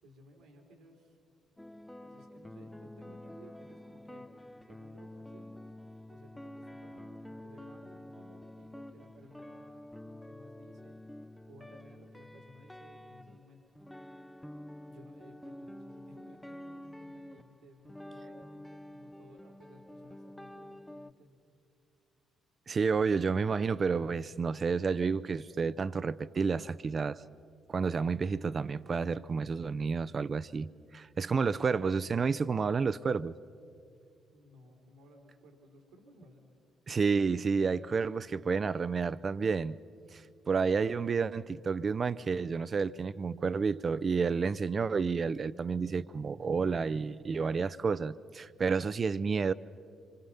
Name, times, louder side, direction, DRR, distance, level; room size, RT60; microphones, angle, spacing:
voice 1, 0.0-1.2 2.0-4.3 4.7-5.6 6.1-11.0 11.5-13.6 14.9-21.3 34.3-36.5, equal, 80° right, 2.3 m, -58 dB
sound 1, 1.6-21.1, left 1 dB, 10° left, 0.7 m, -48 dB
voice 2, 22.7-27.2 27.7-33.3 36.9-39.8 40.1-40.2 40.5-49.5, right 5 dB, 45° right, 0.6 m, -30 dB
26.0 x 24.5 x 5.6 m
hypercardioid pair, 45°, 0 cm